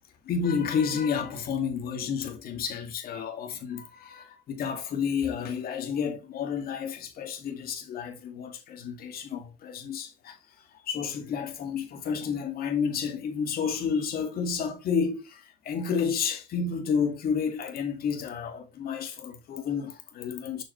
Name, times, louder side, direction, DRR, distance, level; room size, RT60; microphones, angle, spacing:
voice 1, 0.2-10.4 10.8-20.6, left 6 dB, 60° left, 2.2 m, -30 dB
7.1 x 6.2 x 3.2 m
cardioid pair, 110°, 17 cm